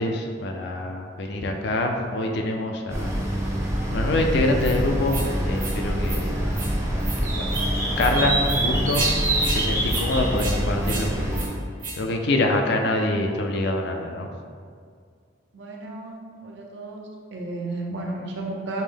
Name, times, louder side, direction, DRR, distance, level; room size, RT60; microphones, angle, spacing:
voice 1, 0.0-3.1 3.9-5.2 5.4-6.5 7.2-7.5 8.0-9.1 9.4-11.4 12.0-14.3, left 2 dB, 60° left, 3 dB, 0.4 m, -25 dB
sound 1, 2.9-11.5, right 1 dB, 15° right, 0.5 m, -25 dB
sound 2, 4.6-4.7 5.1-5.3 5.6-5.8 6.0-6.2 6.5-6.7 7.0-7.2 7.5-7.6 8.0-8.1 8.4-8.6 8.9-9.1 9.4-9.6 9.9-10.0 10.4-10.6 10.8-11.0 11.3-11.5 11.8-12.0, right 3 dB, 45° right, 1.0 m, -32 dB
voice 2, 15.5-17.0 17.3-18.8, right 2 dB, 65° right, -1 dB, 0.6 m, -33 dB
5.2 x 2.1 x 3.4 m, 2.1 s
head